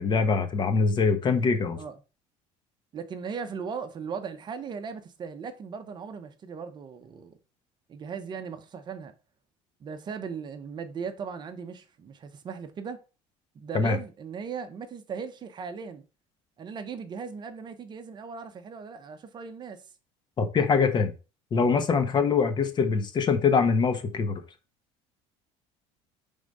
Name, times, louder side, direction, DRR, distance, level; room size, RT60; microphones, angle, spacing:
voice 1, 0.0-1.8 13.7-14.0 20.4-21.1 21.5-24.4, left 5 dB, 35° left, 1.0 m, -23 dB
voice 2, 2.9-7.4 7.9-9.1 9.8-13.0 13.5-16.0 16.6-19.8 22.1-22.3, right 6 dB, 35° right, 0.8 m, -38 dB
4.9 x 3.6 x 5.3 m
cardioid pair, 125°, 13 cm